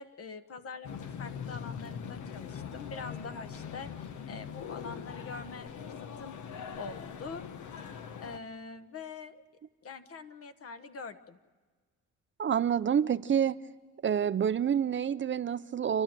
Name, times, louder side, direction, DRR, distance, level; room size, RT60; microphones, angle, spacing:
voice 1, 0.0-6.4 6.8-7.4 7.8-7.9 8.2-9.4 9.8-11.4, left 4 dB, 50° left, 1.3 m, -44 dB
sound 1, 0.8-8.4, left 7 dB, 75° left, 1.3 m, -42 dB
voice 2, 12.4-13.6 14.0-16.0, right 8 dB, 40° right, 0.6 m, -28 dB
29.0 x 12.0 x 9.0 m
cardioid pair, 90°, 30 cm